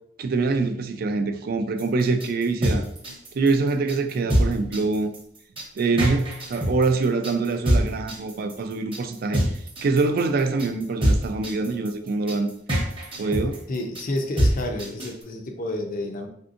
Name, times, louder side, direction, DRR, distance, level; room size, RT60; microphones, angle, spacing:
voice 1, 0.2-2.9 3.3-5.1 5.8-9.4 9.8-12.5 13.2-13.6, right 3 dB, 55° right, 0.3 m, -24 dB
sound 1, 1.8-15.2, equal, 30° right, 0.8 m, -25 dB
voice 2, 13.7-16.3, left 1 dB, 50° left, 0.5 m, -30 dB
3.4 x 2.6 x 2.5 m
head